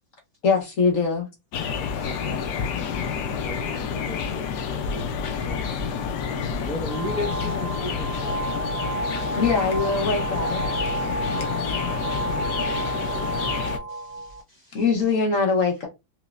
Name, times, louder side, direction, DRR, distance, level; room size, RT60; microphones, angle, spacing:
voice 1, 0.4-1.3 9.4-10.6 14.7-15.9, left 4 dB, 55° left, 1.1 m, -22 dB
sound 1, 1.5-13.8, left 6 dB, 70° left, 1.1 m, -29 dB
voice 2, 1.9-4.5 4.9-8.4 11.4-11.5, left 1 dB, 10° left, 0.4 m, -36 dB
sound 2, 6.9-14.4, right 3 dB, 30° right, 0.8 m, -31 dB
voice 3, 13.0-13.3 13.6-14.9, right 3 dB, 75° right, 0.6 m, -57 dB
4.9 x 2.1 x 2.4 m
omnidirectional pair, 2.0 m